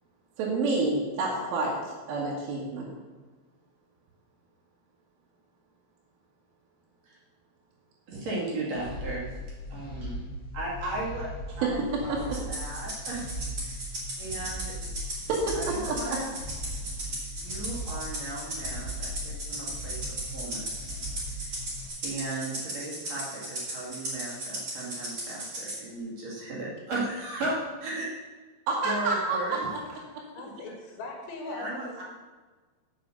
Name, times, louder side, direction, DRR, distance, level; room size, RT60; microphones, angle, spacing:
voice 1, 0.4-2.9 11.6-12.4 15.3-16.2 28.7-29.6 30.1-30.2, right 3 dB, 85° right, -5 dB, 4.2 m, -29 dB
voice 2, 8.1-9.4 9.7-10.2 10.5-13.9 14.2-15.0 15.5-16.2 17.1-21.0 21.3-21.6 22.0-28.1 28.8-29.7 31.4-32.0, right 2 dB, 40° right, -6 dB, 3.1 m, -36 dB
sound 1, 8.7-21.9, equal, 40° left, 1.6 m, -39 dB
Rattle (instrument), 12.3-25.8, right 1 dB, 25° right, 3.4 m, -36 dB
voice 3, 30.3-32.0, left 2 dB, 80° left, 1 dB, 3.9 m, -40 dB
8.1 x 7.8 x 6.9 m, 1.3 s
omnidirectional pair, 5.5 m